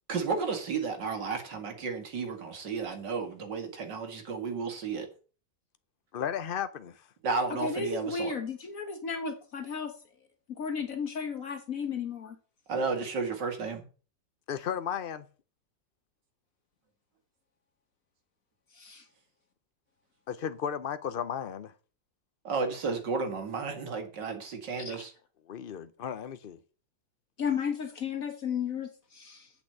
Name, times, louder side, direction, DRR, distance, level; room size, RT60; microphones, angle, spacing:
voice 1, 0.1-5.1 7.2-8.3 12.7-13.9 22.4-25.1, right 4 dB, 90° right, 2.6 m, -33 dB
voice 2, 6.1-7.1 14.5-15.3 20.3-21.7 25.5-26.6, left 8 dB, 85° left, 0.4 m, -34 dB
voice 3, 7.5-10.0 10.5-12.4 18.7-19.0 24.8-25.0 27.4-29.5, left 6 dB, 55° left, 1.5 m, -34 dB
8.3 x 6.0 x 7.7 m
omnidirectional pair, 1.8 m